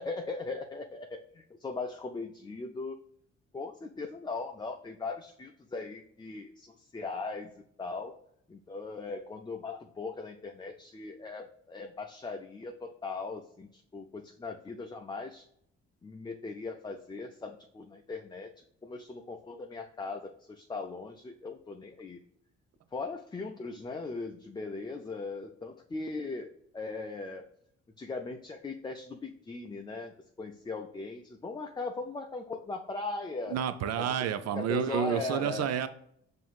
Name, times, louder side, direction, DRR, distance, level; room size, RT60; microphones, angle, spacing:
voice 1, 0.0-3.0 3.5-7.5 7.8-8.2 8.5-15.5 16.0-22.2 22.9-27.4 28.0-33.6 34.0-35.7, left 3 dB, 15° left, 4 dB, 0.4 m, -39 dB
voice 2, 33.5-35.9, right 8 dB, 55° right, 12 dB, 0.5 m, -30 dB
5.5 x 2.7 x 2.3 m, 0.69 s
hypercardioid pair, 50°, 32 cm